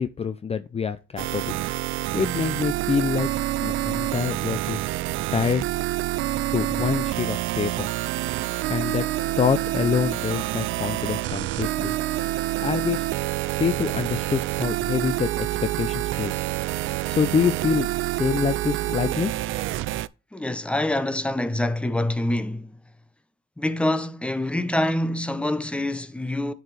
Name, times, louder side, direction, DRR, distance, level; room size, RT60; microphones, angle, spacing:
voice 1, 0.0-1.6 1.9-3.3 3.6-4.8 5.3-5.7 6.5-7.9 8.5-9.1 9.4-11.9 12.4-13.1 13.6-16.4 17.1-19.3, left 6 dB, 30° left, 0.6 m, -26 dB
sound 1, 1.2-20.1, right 16 dB, 80° right, 0.4 m, -27 dB
voice 2, 20.3-22.7 23.6-26.5, left 1 dB, 5° left, 0.9 m, -25 dB
9.4 x 4.8 x 3.3 m
cardioid pair, 90°, 20 cm